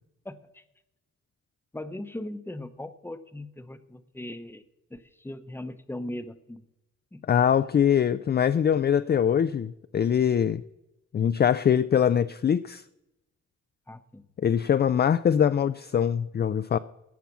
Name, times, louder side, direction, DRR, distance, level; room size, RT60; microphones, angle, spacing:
voice 1, 0.2-0.6 1.7-4.6 4.9-6.6 7.1-7.2 13.9-14.2, left 1 dB, 5° left, 0.8 m, -39 dB
voice 2, 7.3-10.6 11.1-12.8 14.4-16.8, left 8 dB, 35° left, 0.4 m, -23 dB
16.5 x 5.8 x 6.1 m
cardioid pair, 85°, 31 cm